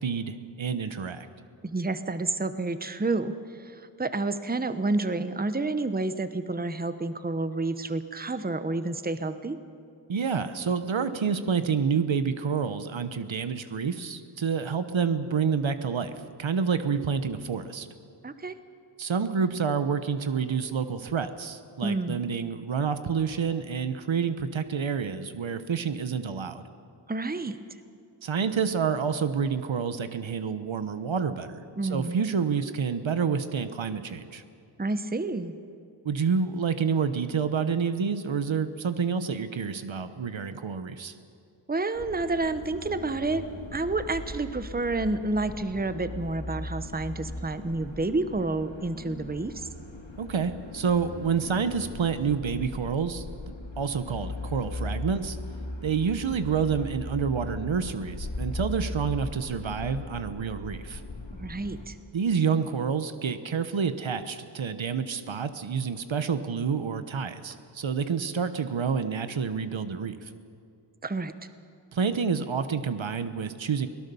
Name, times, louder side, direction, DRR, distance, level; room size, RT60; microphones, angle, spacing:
voice 1, 0.0-1.3 10.1-16.1 16.4-17.9 19.0-26.6 28.2-31.6 31.9-34.4 36.0-41.1 50.2-53.2 53.8-55.4 55.8-61.0 62.1-70.3 71.9-73.9, right 6 dB, 75° right, 11 dB, 1.1 m, -28 dB
voice 2, 1.6-9.6 18.2-18.6 21.8-22.2 27.1-27.6 31.8-32.2 34.8-35.6 41.7-49.7 61.3-62.0 71.0-71.3, right 2 dB, 20° right, 11 dB, 0.9 m, -29 dB
sound 1, 41.9-61.9, left 2 dB, 70° left, 3.2 m, -39 dB
23.5 x 17.5 x 7.0 m, 2.4 s
wide cardioid pair, 75°, 47 cm